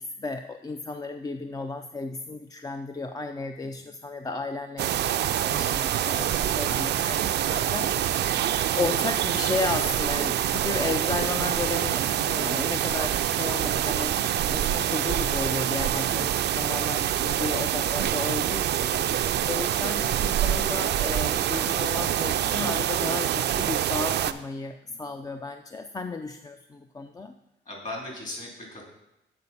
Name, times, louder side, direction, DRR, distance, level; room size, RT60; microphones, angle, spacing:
voice 1, 0.0-7.2 7.5-14.2 14.4-27.3, left 3 dB, 20° left, 6 dB, 0.4 m, -34 dB
sound 1, 4.8-24.3, right 11 dB, 60° right, 0.4 m, -26 dB
voice 2, 18.9-19.4 24.9-25.1 27.6-28.9, left 1 dB, 40° left, -1 dB, 2.8 m, -39 dB
8.1 x 4.3 x 5.5 m, 0.90 s
cardioid pair, 90°, 20 cm